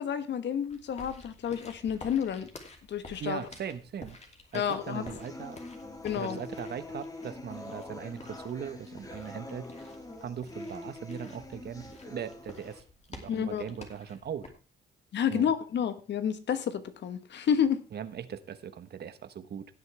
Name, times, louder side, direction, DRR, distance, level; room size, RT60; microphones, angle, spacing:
voice 1, 0.0-2.5 2.9-3.4 4.5-5.2 6.0-6.4 13.3-13.6 15.1-17.8, left 8 dB, 60° left, 11 dB, 1.3 m, -30 dB
sound 1, 0.7-14.5, left 3 dB, 35° left, 2.7 m, -51 dB
voice 2, 3.2-4.2 4.5-5.6 6.1-9.9 10.2-12.8 13.1-14.4 15.3-15.5 17.9-19.7, right 8 dB, 55° right, 12 dB, 1.1 m, -39 dB
sound 2, 4.8-12.8, left 2 dB, 15° left, 1.9 m, -44 dB
16.5 x 8.0 x 3.4 m, 0.35 s
cardioid pair, 90°, 20 cm